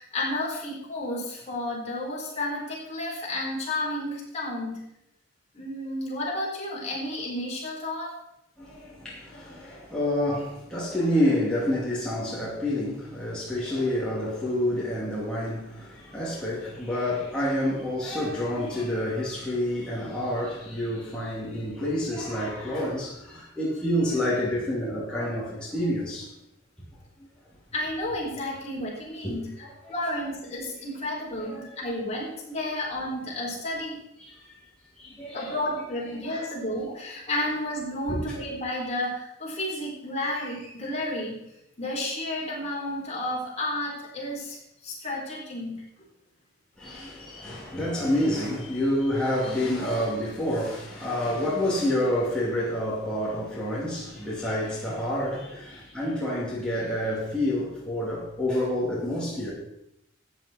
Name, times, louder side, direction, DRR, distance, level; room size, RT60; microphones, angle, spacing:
voice 1, 0.0-4.8 5.5-8.2 27.7-29.5 29.9-34.0 35.3-41.4 41.8-44.6 44.8-45.8, left 1 dB, 30° left, 3.9 m, -31 dB
voice 2, 8.6-26.3 29.2-29.3 29.6-29.7 31.4-31.7 34.2-34.6 35.0-35.6 36.2-36.3 38.1-38.3 46.8-59.5, left 1 dB, 5° left, 2.7 m, -28 dB
14.0 x 8.9 x 4.3 m
head